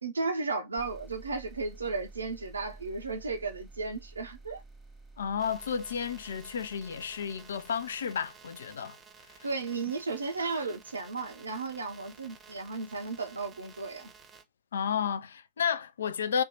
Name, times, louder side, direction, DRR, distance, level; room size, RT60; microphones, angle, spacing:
voice 1, 0.0-4.6 9.4-14.1, right 3 dB, 75° right, 0.4 m, -34 dB
sound 1, 0.8-8.3, right 3 dB, 5° right, 1.1 m, -51 dB
voice 2, 5.2-9.0 14.7-16.4, left 7 dB, 65° left, 0.3 m, -32 dB
sound 2, 5.4-14.4, right 5 dB, 20° right, 0.7 m, -54 dB
2.7 x 2.2 x 2.6 m
figure-of-eight pair, 90°, 0 cm